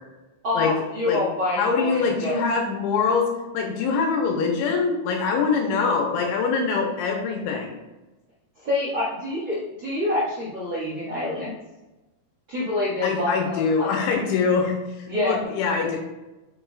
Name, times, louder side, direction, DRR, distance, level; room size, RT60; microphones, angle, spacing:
voice 1, 0.4-2.4 8.6-11.5 12.5-14.0 15.1-15.4, left 2 dB, 70° right, -9 dB, 1.1 m, -27 dB
voice 2, 1.5-7.8 13.0-16.0, left 5 dB, 75° left, 1 dB, 3.1 m, -24 dB
8.9 x 6.4 x 2.5 m, 1.1 s
omnidirectional pair, 5.8 m